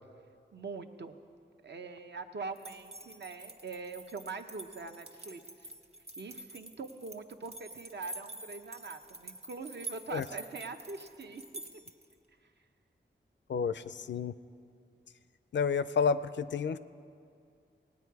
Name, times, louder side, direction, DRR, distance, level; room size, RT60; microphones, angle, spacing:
voice 1, 0.5-1.1 1.6-5.7 6.2-11.4, right 4 dB, 60° right, 6 dB, 0.8 m, -43 dB
sound 1, 2.6-12.1, right 2 dB, 30° right, 1.0 m, -47 dB
voice 2, 13.5-14.3 15.5-16.8, left 6 dB, 70° left, 14 dB, 0.4 m, -30 dB
17.5 x 9.3 x 4.7 m, 2.4 s
wide cardioid pair, 65°, 20 cm